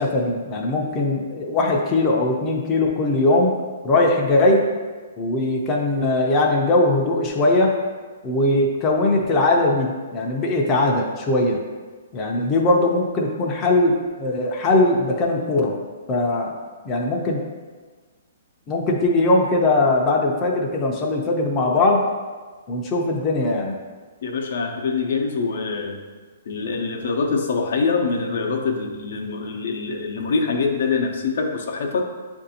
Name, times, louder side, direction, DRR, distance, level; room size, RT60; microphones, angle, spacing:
voice 1, 0.0-3.6 3.8-4.6 5.2-7.7 8.2-11.6 12.1-15.8 16.1-16.5 16.8-17.4 18.7-22.0 22.7-23.8, left 2 dB, 25° left, -1 dB, 0.6 m, -20 dB
voice 2, 24.2-26.0 26.5-32.0, left 4 dB, 70° left, 2 dB, 0.6 m, -24 dB
7.4 x 2.6 x 2.8 m, 1.4 s
hypercardioid pair, 145°, 0 cm